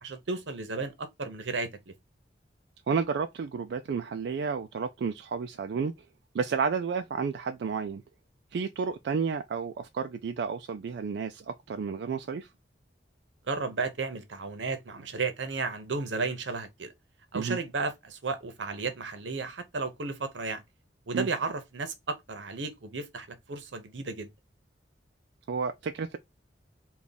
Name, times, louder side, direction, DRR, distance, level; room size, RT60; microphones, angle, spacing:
voice 1, 0.0-1.9 13.5-16.9 17.3-20.6 21.1-24.3, right 4 dB, 85° right, 0.8 m, -33 dB
voice 2, 2.9-5.9 6.3-8.0 8.5-12.5 17.3-17.6 21.1-21.3 25.5-26.2, right 5 dB, 65° right, 0.3 m, -31 dB
3.5 x 2.3 x 3.9 m
head